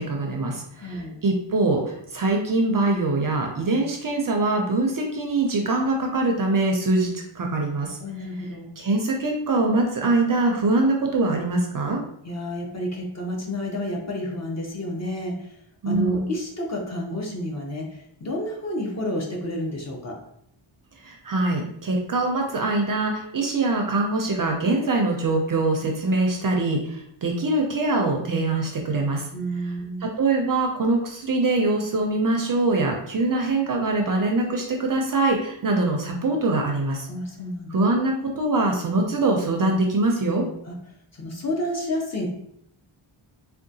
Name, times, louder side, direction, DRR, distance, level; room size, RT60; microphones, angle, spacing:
voice 1, 0.0-7.1 7.4-8.0 8.8-12.0 15.8-16.3 21.0-29.3 30.0-37.1 37.7-40.5, right 2 dB, 45° right, 1 dB, 0.4 m, -23 dB
voice 2, 0.8-1.1 8.0-8.7 12.2-15.6 15.9-20.2 29.3-30.1 37.1-37.8 40.6-40.8 41.1-42.3, equal, 35° left, -1 dB, 0.6 m, -30 dB
3.6 x 2.2 x 2.6 m, 0.71 s
wide cardioid pair, 155°, 50 cm